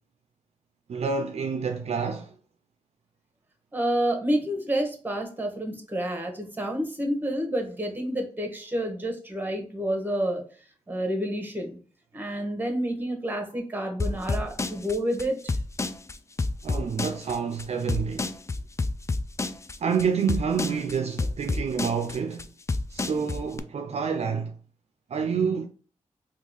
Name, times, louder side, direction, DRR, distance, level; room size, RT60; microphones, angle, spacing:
voice 1, 0.9-2.3 16.6-18.3 19.8-22.5 22.9-24.6 25.1-25.7, right 6 dB, 55° right, 0.4 m, -28 dB
voice 2, 3.7-10.4 10.9-11.8 12.1-15.6, right 1 dB, 15° right, 1.0 m, -29 dB
sound 1, 14.0-23.6, left 3 dB, 25° left, 0.3 m, -29 dB
3.6 x 2.3 x 3.0 m
cardioid pair, 50°, 13 cm